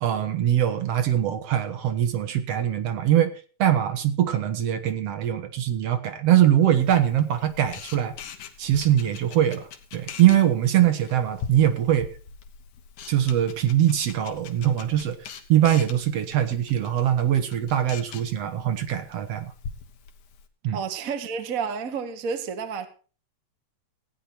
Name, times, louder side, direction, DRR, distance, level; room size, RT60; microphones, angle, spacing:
voice 1, 0.0-3.3 3.6-8.1 8.6-9.7 9.9-12.1 13.1-15.2 15.5-19.5 20.6-20.8, right 11 dB, 65° right, 2.1 m, -22 dB
Camera, 6.8-20.5, left 7 dB, 90° left, 2.8 m, -43 dB
voice 2, 20.7-22.9, right 6 dB, 45° right, 1.1 m, -30 dB
16.0 x 9.9 x 4.4 m
omnidirectional pair, 3.3 m